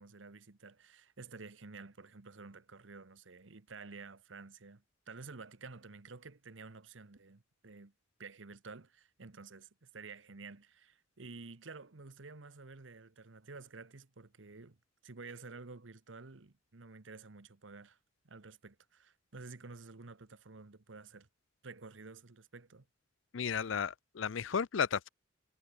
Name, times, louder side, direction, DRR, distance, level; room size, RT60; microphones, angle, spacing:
voice 1, 0.0-7.9 8.2-14.8 15.0-18.0 18.2-21.3 21.6-22.9, right 4 dB, 70° right, 1.1 m, -51 dB
voice 2, 23.3-25.1, left 6 dB, 75° left, 0.6 m, -33 dB
head